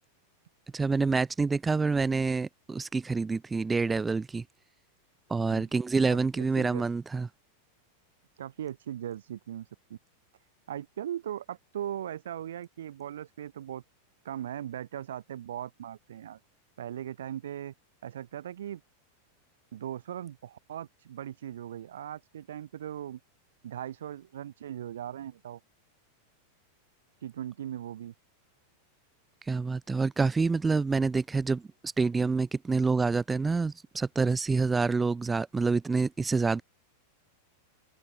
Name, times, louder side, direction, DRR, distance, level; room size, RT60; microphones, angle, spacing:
voice 1, 0.7-4.4 5.3-7.3 29.5-31.6 32.0-36.6, right 4 dB, 10° right, 1.2 m, -27 dB
voice 2, 6.1-6.8 8.4-10.0 10.7-13.8 14.2-16.4 16.8-17.7 18.0-18.8 19.7-23.2 23.6-25.6 27.2-28.1, right 11 dB, 60° right, 1.2 m, -39 dB
figure-of-eight pair, 90°, 0 cm